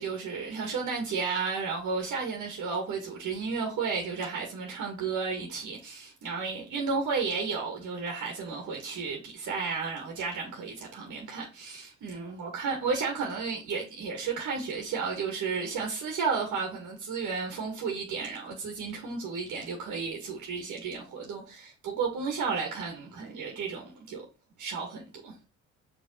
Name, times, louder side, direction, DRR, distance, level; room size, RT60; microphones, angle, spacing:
voice 1, 0.0-24.3 24.6-25.3, right 5 dB, 75° right, 2.0 m, -33 dB
5.3 x 4.0 x 5.5 m
cardioid pair, 90°, 30 cm